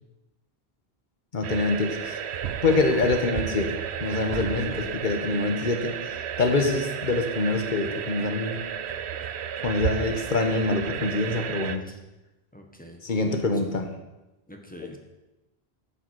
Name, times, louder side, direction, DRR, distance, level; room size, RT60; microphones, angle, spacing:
voice 1, 1.3-2.2 2.6-8.7 9.6-11.8 13.0-13.9, left 3 dB, 50° left, 5 dB, 1.4 m, -25 dB
sound 1, 1.4-11.8, right 9 dB, 90° right, 0.9 m, -32 dB
voice 2, 4.5-5.0 11.8-11.9 12.5-13.7 14.5-15.0, left 1 dB, 10° left, 2 dB, 1.3 m, -44 dB
9.9 x 5.9 x 7.6 m, 1.0 s
omnidirectional pair, 1.1 m